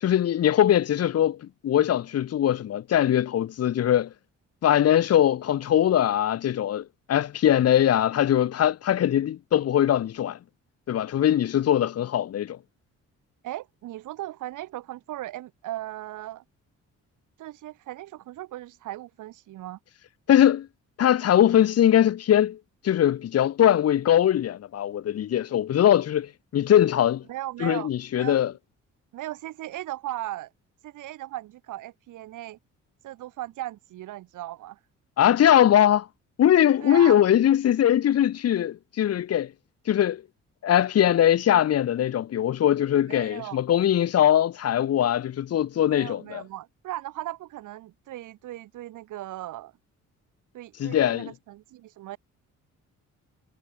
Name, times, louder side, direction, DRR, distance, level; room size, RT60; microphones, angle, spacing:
voice 1, 0.0-4.1 4.6-10.4 10.9-12.6 20.3-20.7 21.0-22.6 22.8-27.2 27.6-28.5 35.2-36.1 36.4-39.5 39.9-40.2 40.6-46.4 50.8-51.3, left 11 dB, 55° left, 1.0 m, -21 dB
voice 2, 13.4-16.4 17.4-19.8 27.3-27.9 28.1-28.4 29.1-30.5 30.8-32.6 33.0-34.8 36.8-37.2 43.0-43.6 45.8-49.7 50.5-52.2, right 15 dB, 85° right, 5.9 m, -37 dB
cardioid pair, 90°, 30 cm